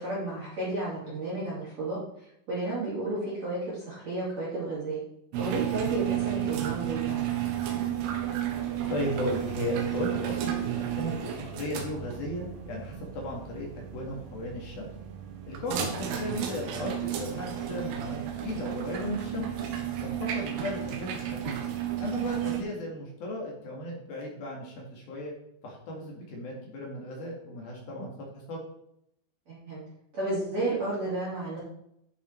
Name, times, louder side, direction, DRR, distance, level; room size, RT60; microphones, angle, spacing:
voice 1, 0.0-5.0 5.4-7.2 15.7-15.9 29.5-29.8 30.1-31.6, right 2 dB, 35° right, -9 dB, 3.8 m, -32 dB
sound 1, 5.3-22.6, right 11 dB, 70° right, 2.9 m, -33 dB
voice 2, 8.9-13.7 13.9-14.9 15.5-19.5 20.0-21.6 22.0-25.3 25.6-28.1 28.5-28.6, left 1 dB, 55° left, -1 dB, 3.5 m, -35 dB
11.5 x 6.6 x 4.5 m, 0.75 s
omnidirectional pair, 5.8 m